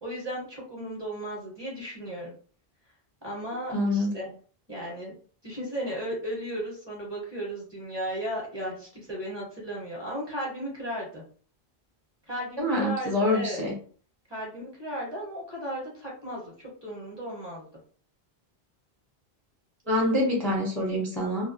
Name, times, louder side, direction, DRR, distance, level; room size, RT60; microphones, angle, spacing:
voice 1, 0.0-2.3 3.2-4.4 4.7-5.1 5.4-11.2 12.3-13.6 14.3-17.7, equal, 30° right, -3 dB, 0.8 m, -35 dB
voice 2, 3.7-4.1 12.6-13.7 19.9-21.5, left 1 dB, ahead, -2 dB, 0.5 m, -26 dB
2.2 x 2.0 x 2.7 m, 0.43 s
omnidirectional pair, 1.1 m